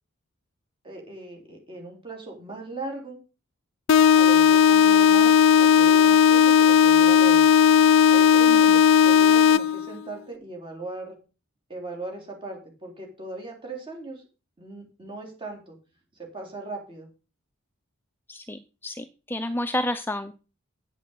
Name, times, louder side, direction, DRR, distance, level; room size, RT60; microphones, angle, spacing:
voice 1, 0.8-3.2 4.2-7.4 8.1-11.2 11.7-14.2 14.6-15.8 16.2-17.1, right 2 dB, 25° right, 0 dB, 3.6 m, -38 dB
sound 1, 3.9-9.9, left 7 dB, 65° left, 0.5 m, -16 dB
voice 2, 18.3-20.4, left 1 dB, 10° left, 9 dB, 0.4 m, -30 dB
8.3 x 8.2 x 5.5 m, 0.33 s
head